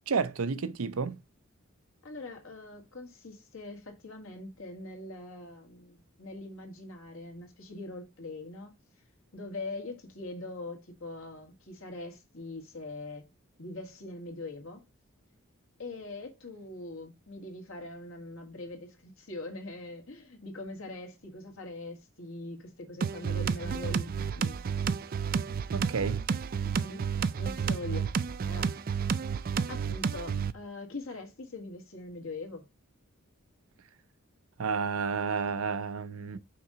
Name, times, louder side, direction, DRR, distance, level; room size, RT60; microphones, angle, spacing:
voice 1, 0.1-1.2 25.7-26.2 34.6-36.4, right 5 dB, 80° right, 0.6 m, -31 dB
voice 2, 2.0-8.7 9.3-13.3 13.6-14.8 15.8-24.6 26.8-27.1 27.4-28.1 28.5-28.8 29.7-32.7, left 2 dB, 70° left, 1.9 m, -42 dB
sound 1, 23.0-30.5, right 6 dB, 40° right, 0.3 m, -31 dB
5.8 x 3.8 x 5.5 m
head